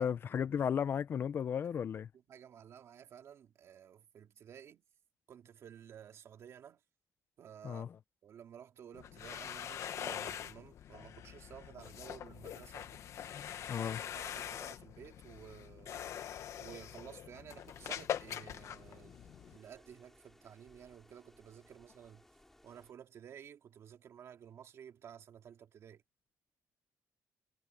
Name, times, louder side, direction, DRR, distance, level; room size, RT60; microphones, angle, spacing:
voice 1, 0.0-2.1 7.6-8.0 13.3-14.0, left 8 dB, 40° left, 0.5 m, -35 dB
voice 2, 2.3-4.8 5.3-6.8 7.4-7.9 8.2-13.0 13.7-19.2 19.5-22.2 22.6-26.0, right 9 dB, 55° right, 2.7 m, -53 dB
sound 1, 8.9-19.6, left 10 dB, 60° left, 1.1 m, -43 dB
sound 2, 17.5-22.9, left 1 dB, 5° left, 4.0 m, -63 dB
cardioid pair, 160°, 6 cm